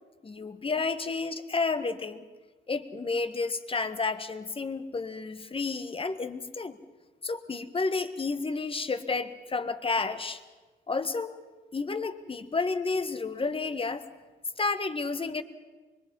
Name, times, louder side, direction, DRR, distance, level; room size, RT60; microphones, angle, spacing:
voice 1, 0.2-2.2 2.7-6.8 7.2-10.4 10.9-11.4 11.7-14.0 14.6-15.4, left 4 dB, 25° left, 11 dB, 1.5 m, -31 dB
25.0 x 22.5 x 5.5 m, 1.3 s
cardioid pair, 90°, 20 cm